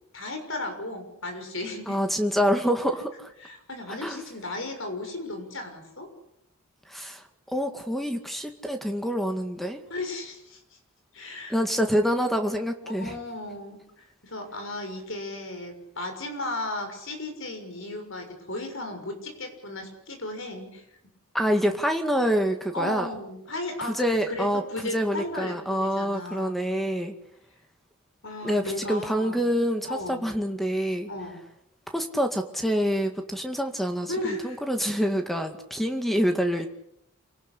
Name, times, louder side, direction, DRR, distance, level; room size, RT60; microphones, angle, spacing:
voice 1, 0.1-2.0 3.4-6.1 9.9-10.6 11.1-11.6 12.8-20.9 22.7-26.7 28.2-29.4 29.9-30.2 31.1-31.5 34.1-34.6, left 2 dB, 65° left, 5 dB, 6.5 m, -35 dB
voice 2, 1.9-3.3 4.0-4.2 6.9-7.2 7.5-9.8 11.5-13.1 21.3-23.1 23.9-27.1 28.4-28.6 28.9-31.1 31.9-34.1 34.4-36.7, equal, ahead, 5 dB, 2.0 m, -26 dB
27.5 x 18.5 x 8.5 m, 0.78 s
head